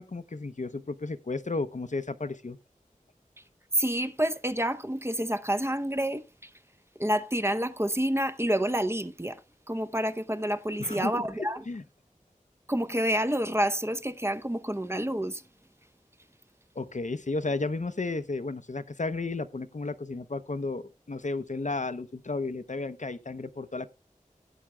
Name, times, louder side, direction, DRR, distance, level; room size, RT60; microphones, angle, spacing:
voice 1, 0.0-2.6 10.8-11.8 16.8-23.9, left 3 dB, 60° left, 0.7 m, -33 dB
voice 2, 3.7-6.5 7.0-9.4 9.7-11.6 12.7-15.4, right 1 dB, 20° right, 0.7 m, -28 dB
16.0 x 8.6 x 2.2 m
wide cardioid pair, 45°, 14 cm